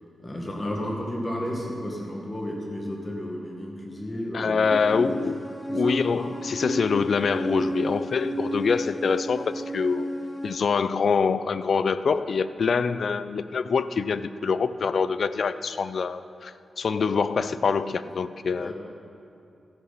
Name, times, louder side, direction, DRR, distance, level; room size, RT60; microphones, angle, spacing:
voice 1, 0.2-5.2 5.7-6.3 18.6-18.7, equal, 25° left, -1 dB, 1.8 m, -33 dB
voice 2, 4.3-5.5 5.7-10.1 10.4-18.7, left 5 dB, 65° left, 14 dB, 0.4 m, -25 dB
sound 1, 4.7-10.6, right 1 dB, 10° left, 0.7 m, -32 dB
14.0 x 11.0 x 4.2 m, 2.6 s
cardioid pair, 80°, 0 cm